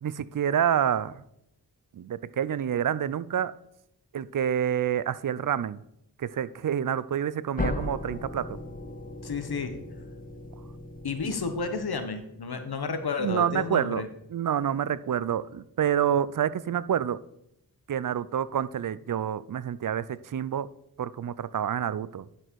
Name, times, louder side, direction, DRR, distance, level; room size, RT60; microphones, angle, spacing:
voice 1, 0.0-1.2 1.9-3.5 4.1-5.8 6.2-8.6 13.2-14.0 14.3-17.2 17.9-20.7 21.0-22.3, right 9 dB, 55° right, 0.5 m, -28 dB
sound 1, 7.6-12.3, left 2 dB, 20° left, 0.8 m, -37 dB
voice 2, 9.2-9.8 11.0-14.1, left 4 dB, 70° left, 1.1 m, -31 dB
10.5 x 6.2 x 4.6 m
wide cardioid pair, 70°, 39 cm